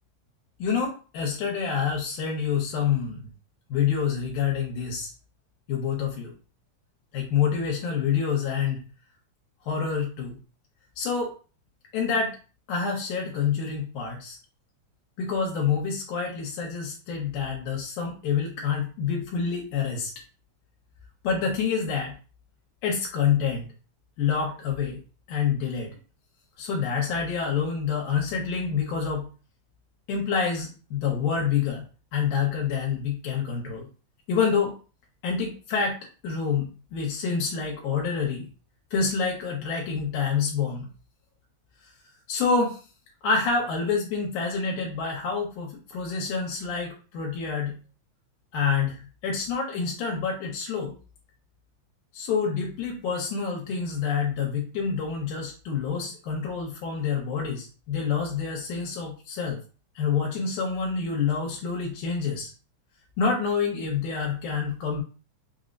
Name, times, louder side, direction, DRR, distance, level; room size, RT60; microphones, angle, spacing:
voice 1, 0.6-3.3 3.7-5.1 5.7-6.3 7.1-8.8 9.7-10.4 11.0-11.3 11.9-12.4 12.7-14.4 15.2-20.1 21.2-22.1 22.8-23.7 24.2-25.0 25.3-26.0 26.6-29.3 30.1-31.8 32.1-33.9 34.3-34.8 35.2-36.0 36.2-38.5 38.9-40.9 42.3-42.8 43.2-47.7 48.5-50.9 52.1-59.6 60.0-62.5 63.2-65.0, left 6 dB, 80° left, 0 dB, 2.1 m, -27 dB
5.6 x 2.0 x 2.5 m, 0.36 s
omnidirectional pair, 3.6 m